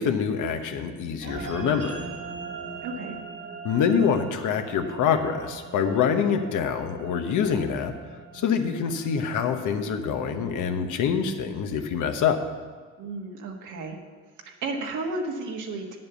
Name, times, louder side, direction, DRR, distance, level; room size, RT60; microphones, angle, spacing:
voice 1, 0.0-2.1 3.6-7.9 8.3-12.4, left 7 dB, 80° left, 7 dB, 1.1 m, -25 dB
sound 1, 1.2-11.8, right 4 dB, 50° right, 1.6 m, -41 dB
voice 2, 2.8-3.2 13.0-14.0 14.4-16.0, right 3 dB, 80° right, 1 dB, 1.5 m, -33 dB
9.2 x 7.6 x 6.9 m, 1.5 s
cardioid pair, 90°, 30 cm